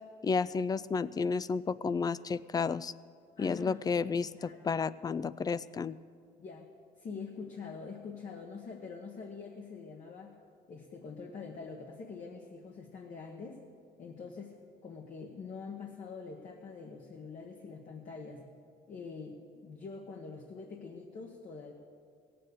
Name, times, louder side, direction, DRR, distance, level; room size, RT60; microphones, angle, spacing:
voice 1, 0.2-2.9 3.4-6.0, left 5 dB, 25° left, 19 dB, 0.3 m, -32 dB
voice 2, 3.4-3.8 4.3-4.8 6.4-6.7 7.0-10.4 10.7-13.6 14.0-18.5 18.9-21.7, left 5 dB, 50° left, 1 dB, 1.4 m, -45 dB
17.0 x 7.6 x 8.3 m, 2.2 s
cardioid pair, 110°, 17 cm